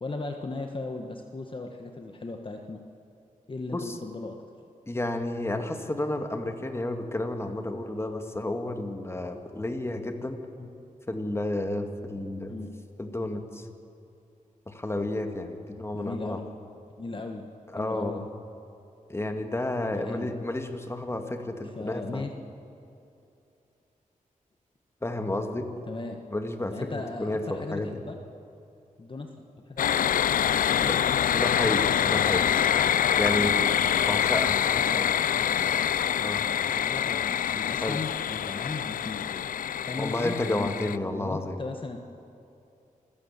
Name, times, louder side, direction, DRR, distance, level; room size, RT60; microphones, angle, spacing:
voice 1, 0.0-2.8 3.5-4.4 10.6-10.7 12.5-12.7 15.9-16.5 17.0-17.5 17.8-18.3 20.0-20.3 21.7-22.3 25.9-26.2 26.7-28.1 29.0-30.1 30.7-31.0 34.7-35.2 35.5-35.7 36.7-39.5 39.9-42.0, left 3 dB, 40° left, 4 dB, 1.5 m, -37 dB
voice 2, 4.9-10.4 11.1-12.6 13.0-13.7 14.7-16.4 17.7-18.2 19.1-22.3 25.0-25.7 26.3-27.9 30.8-31.0 31.3-32.5 33.2-33.6 34.1-34.7 35.0-35.1 36.2-36.4 37.8-38.0 40.0-41.6, left 1 dB, 20° left, 5 dB, 1.9 m, -31 dB
sound 1, 29.8-41.0, left 9 dB, 80° left, 0.4 m, -25 dB
27.5 x 16.0 x 7.3 m, 2.7 s
wide cardioid pair, 95°, 14 cm